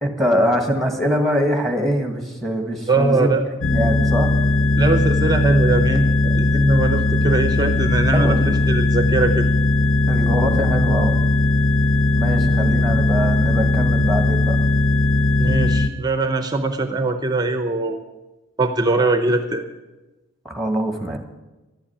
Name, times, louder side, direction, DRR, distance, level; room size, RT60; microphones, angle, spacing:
voice 1, 0.0-3.4 3.7-4.4 8.1-8.7 10.1-11.2 12.2-14.6 20.4-21.2, equal, ahead, 4 dB, 1.6 m, -23 dB
voice 2, 2.9-3.4 4.8-9.5 12.6-12.7 15.4-18.0 18.6-19.6, right 2 dB, 20° right, 7 dB, 0.7 m, -21 dB
sound 1, 3.6-15.9, left 2 dB, 65° left, 0.7 m, -18 dB
12.0 x 8.8 x 10.0 m, 1.1 s
head